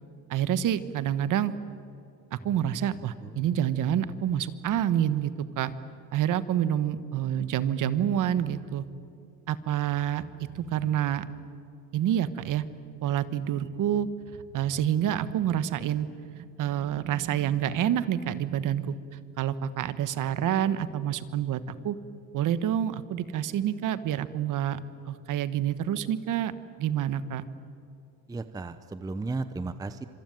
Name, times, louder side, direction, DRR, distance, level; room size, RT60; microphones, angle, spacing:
voice 1, 0.3-1.5 2.3-5.3 5.6-5.7 6.1-8.8 9.5-10.3 10.5-11.3 11.9-12.7 13.0-14.1 14.5-18.9 19.4-22.0 22.3-24.8 25.1-26.5 26.8-27.4, right 10 dB, 45° right, 14 dB, 1.4 m, -28 dB
voice 2, 28.3-30.1, right 3 dB, 10° right, 12 dB, 0.7 m, -35 dB
26.5 x 24.0 x 9.3 m, 2.6 s
supercardioid pair, 125°, 44 cm